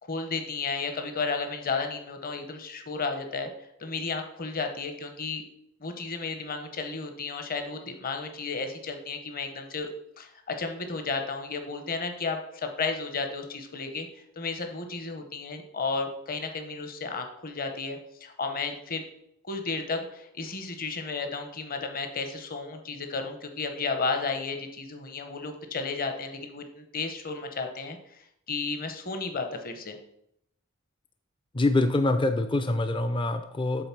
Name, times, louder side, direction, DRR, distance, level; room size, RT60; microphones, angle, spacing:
voice 1, 0.0-3.5 3.8-5.4 5.8-9.9 10.2-14.1 14.4-19.0 19.4-30.0, left 4 dB, 40° left, 6 dB, 0.9 m, -33 dB
voice 2, 31.6-33.9, left 2 dB, 20° left, 9 dB, 0.4 m, -25 dB
7.8 x 3.8 x 5.9 m, 0.75 s
head